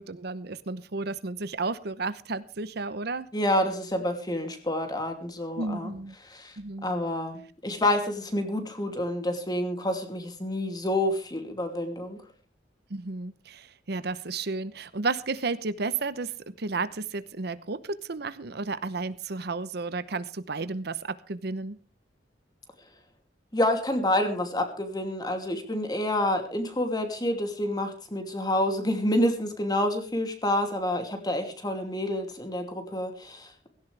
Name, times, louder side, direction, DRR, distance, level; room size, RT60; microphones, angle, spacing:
voice 1, 0.0-3.3 5.6-6.2 6.6-6.9 12.9-21.8, right 3 dB, 60° right, 14 dB, 0.8 m, -32 dB
voice 2, 3.3-5.9 6.3-6.5 6.8-12.2 23.5-33.7, left 1 dB, 25° left, 5 dB, 2.8 m, -28 dB
17.0 x 16.5 x 3.4 m, 0.37 s
head